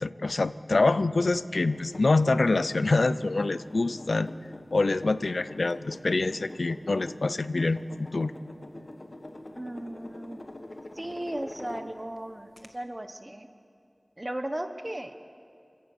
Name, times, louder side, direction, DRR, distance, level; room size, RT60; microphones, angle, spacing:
voice 1, 0.0-4.3 4.7-7.8 8.1-8.3, left 3 dB, 90° left, 15 dB, 0.5 m, -25 dB
sound 1, 1.7-12.2 12.6-12.7, left 1 dB, 55° left, 1.6 m, -45 dB
voice 2, 9.5-10.4 10.9-13.5 14.2-15.1, right 1 dB, 30° right, 7 dB, 1.1 m, -36 dB
27.5 x 16.5 x 7.3 m, 2.4 s
wide cardioid pair, 50°, 0 cm